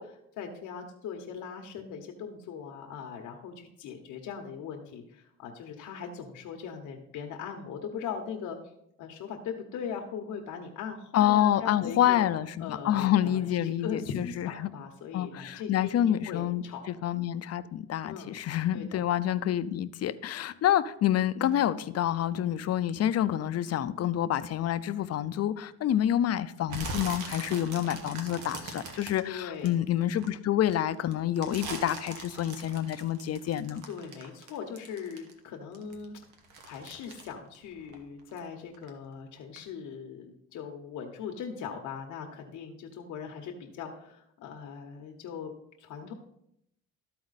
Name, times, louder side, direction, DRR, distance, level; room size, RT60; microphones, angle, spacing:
voice 1, 0.0-8.6 9.0-12.2 12.6-16.9 18.0-18.3 18.7-19.0 29.3-29.7 33.9-36.2 36.6-45.5 45.8-46.1, left 6 dB, 85° left, 2 dB, 0.9 m, -40 dB
voice 2, 11.1-14.7 15.1-33.9, left 11 dB, 55° left, 13 dB, 0.5 m, -28 dB
sound 1, 26.7-30.3 30.7-35.5 35.7-38.5 38.7-39.1 39.6-39.7, right 3 dB, 85° right, 1.3 m, -41 dB
13.0 x 4.3 x 4.0 m, 0.76 s
cardioid pair, 90°, 30 cm